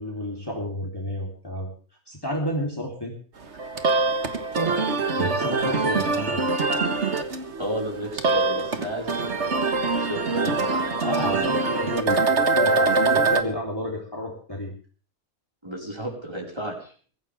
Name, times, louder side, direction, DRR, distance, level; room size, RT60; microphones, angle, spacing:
voice 1, 0.0-1.7 2.1-3.2 5.2-6.4 11.0-14.7, equal, 15° left, 0 dB, 3.6 m, -31 dB
sound 1, 3.4-13.4, right 3 dB, 50° right, 1.8 m, -24 dB
voice 2, 7.6-11.7 15.6-16.9, right 1 dB, 15° right, 0 dB, 5.0 m, -32 dB
23.0 x 15.0 x 3.5 m, 0.41 s
omnidirectional pair, 1.6 m